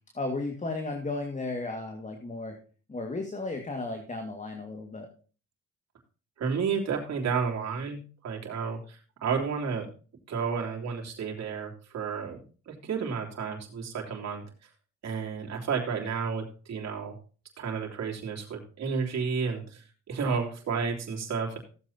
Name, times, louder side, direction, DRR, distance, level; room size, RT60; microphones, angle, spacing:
voice 1, 0.1-2.6 2.9-5.1, left 2 dB, 25° left, 4 dB, 2.0 m, -34 dB
voice 2, 6.4-9.9 10.3-12.4 12.7-14.4 15.0-17.1 17.6-21.6, right 5 dB, 60° right, 0 dB, 3.2 m, -31 dB
15.5 x 8.0 x 2.8 m, 0.37 s
cardioid pair, 90°, 30 cm